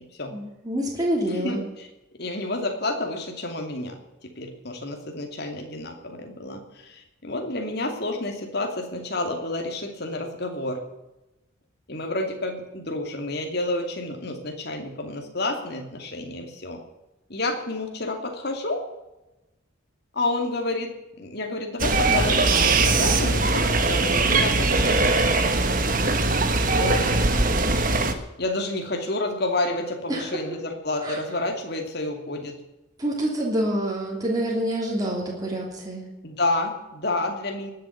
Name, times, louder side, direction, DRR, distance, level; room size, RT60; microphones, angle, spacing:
voice 1, 0.3-1.6 30.1-30.3 31.0-31.2 33.0-36.1, right 1 dB, 20° right, -2 dB, 3.1 m, -27 dB
voice 2, 1.3-1.9 2.2-3.9 4.4-10.8 11.9-16.8 17.3-18.8 20.1-20.9 21.2-25.7 26.5-27.1 28.4-32.5 36.2-37.7, left 2 dB, 50° left, 3 dB, 2.6 m, -29 dB
sound 1, 21.8-28.1, right 3 dB, 40° right, 1.4 m, -21 dB
19.5 x 7.6 x 8.4 m, 0.99 s
head